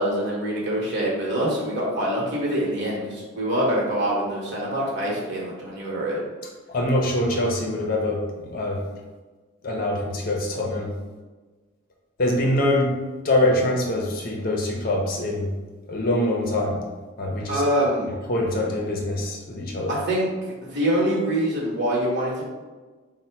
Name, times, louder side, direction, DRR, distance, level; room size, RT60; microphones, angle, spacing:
voice 1, 0.0-6.2 17.5-18.1 19.9-22.5, right 1 dB, 50° right, -4 dB, 1.1 m, -25 dB
voice 2, 6.7-8.9 9.6-10.9 12.2-13.0 13.2-15.6 15.9-16.9 17.2-17.6 18.1-20.0, left 1 dB, 40° left, 0 dB, 0.6 m, -24 dB
4.2 x 2.1 x 4.4 m, 1.3 s
head